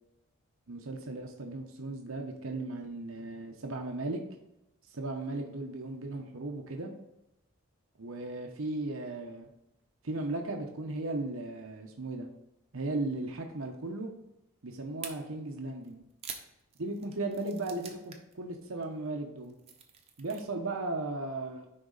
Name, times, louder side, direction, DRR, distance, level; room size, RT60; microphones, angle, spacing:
voice 1, 0.7-4.2 4.9-6.9 8.0-9.5 10.0-12.3 12.7-14.1 14.6-16.0 16.8-19.5 20.2-21.7, right 2 dB, 75° right, 2 dB, 0.9 m, -36 dB
sound 1, 15.0-15.1 15.8-18.3 18.6-18.8 19.3-20.4, right 7 dB, 30° right, 0.9 m, -45 dB
10.0 x 4.0 x 4.0 m, 0.88 s
head